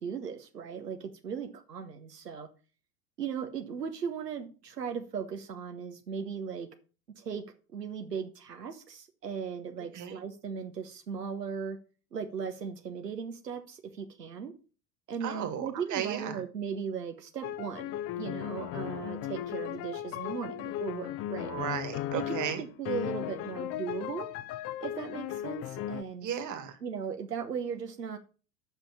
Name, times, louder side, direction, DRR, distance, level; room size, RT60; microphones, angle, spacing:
voice 1, 0.0-2.5 3.2-6.7 7.1-7.4 7.7-11.8 12.1-14.5 15.1-21.5 22.1-24.3 24.8-26.3 26.8-28.2, right 7 dB, 90° right, 1.1 m, -37 dB
voice 2, 15.2-16.4 21.5-22.6 26.2-26.8, right 9 dB, 40° right, 2.0 m, -35 dB
sound 1, 17.4-26.0, left 12 dB, 35° left, 0.5 m, -36 dB
7.8 x 5.9 x 7.1 m
hypercardioid pair, 80°, 47 cm